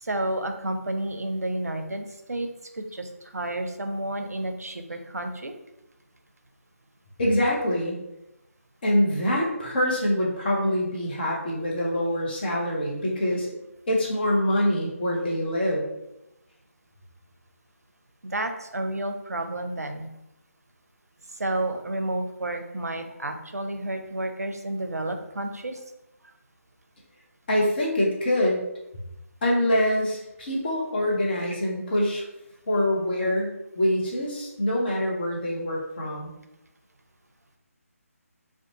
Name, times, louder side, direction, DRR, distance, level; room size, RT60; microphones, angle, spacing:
voice 1, 0.0-2.5 2.8-5.5 18.2-20.1 21.4-25.8, right 1 dB, 90° right, 6 dB, 0.4 m, -31 dB
voice 2, 7.2-8.0 8.8-13.5 13.9-15.8 27.5-28.6 29.4-32.3 32.7-36.3, left 1 dB, 40° left, -3 dB, 0.7 m, -25 dB
2.6 x 2.1 x 2.9 m, 0.90 s
figure-of-eight pair, 155°, 8 cm